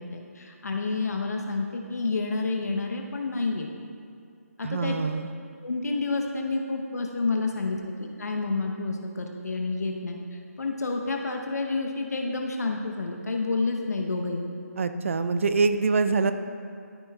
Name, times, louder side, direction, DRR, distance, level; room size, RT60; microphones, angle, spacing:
voice 1, 0.0-3.7 4.6-5.0 5.6-10.2 10.6-14.4, left 3 dB, 75° left, 2 dB, 0.9 m, -29 dB
voice 2, 4.6-5.3 14.8-16.3, right 4 dB, 50° right, 9 dB, 0.5 m, -24 dB
13.0 x 6.3 x 2.4 m, 2.3 s
hypercardioid pair, 170°, 9 cm